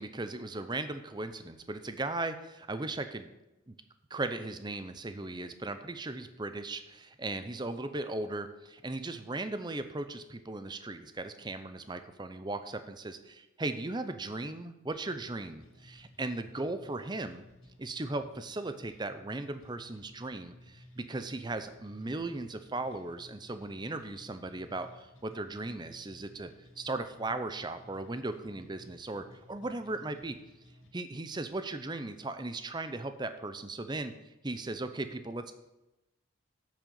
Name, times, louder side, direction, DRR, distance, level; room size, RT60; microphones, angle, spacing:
voice 1, 0.0-3.3 3.7-3.8 4.1-17.4 17.8-30.4 30.9-35.5, right 2 dB, 20° right, 10 dB, 0.6 m, -37 dB
sound 1, 14.9-30.9, left 1 dB, 80° left, 2.0 m, -57 dB
8.7 x 6.3 x 7.0 m, 0.96 s
head